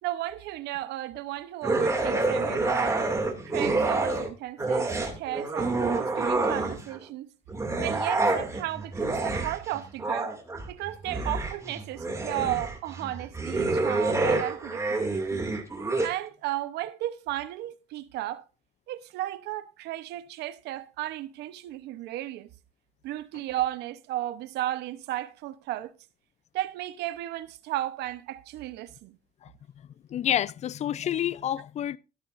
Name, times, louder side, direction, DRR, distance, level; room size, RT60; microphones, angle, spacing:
voice 1, 0.0-3.0 3.4-7.3 7.8-10.3 10.7-15.4 16.0-18.4 18.9-22.5 23.0-25.9 26.5-29.2, right 14 dB, 85° right, 0.9 m, -34 dB
sound 1, 1.6-4.3 4.6-7.0 7.5-16.1, right 3 dB, 15° right, 2.5 m, -28 dB
voice 2, 30.1-32.0, left 10 dB, 40° left, 0.5 m, -28 dB
13.0 x 12.0 x 2.6 m
cardioid pair, 110°, 17 cm